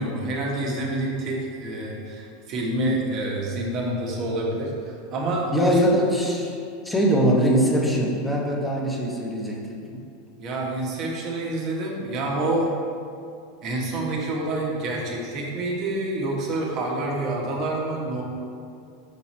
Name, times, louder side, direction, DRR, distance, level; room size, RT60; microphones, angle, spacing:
voice 1, 0.0-5.7 10.4-12.7 13.6-18.2, right 2 dB, 45° right, -2 dB, 1.3 m, -27 dB
voice 2, 5.5-6.5 6.8-10.0, equal, 5° left, -3 dB, 0.9 m, -22 dB
5.9 x 4.0 x 4.3 m, 2.5 s
supercardioid pair, 120°, 0 cm